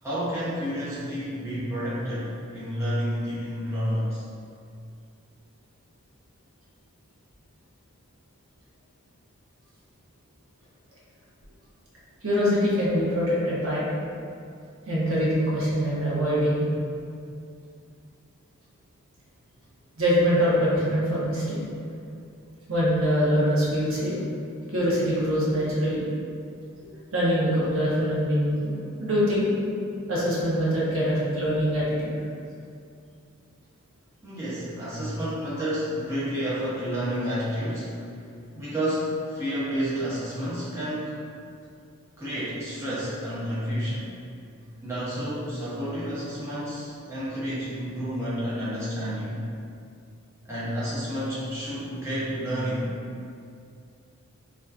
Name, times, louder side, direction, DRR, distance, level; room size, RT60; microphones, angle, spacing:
voice 1, 0.0-4.2 34.2-38.0 38.5-41.2 42.2-44.1 44.8-49.5 50.4-52.9, equal, 10° right, -11 dB, 0.4 m, -30 dB
voice 2, 12.2-13.9 14.9-16.7 20.0-21.6 22.7-24.2 24.7-26.0 26.8-28.7 29.0-29.5 30.1-32.1, equal, 65° right, -7 dB, 0.7 m, -24 dB
2.6 x 2.2 x 2.3 m, 2.4 s
head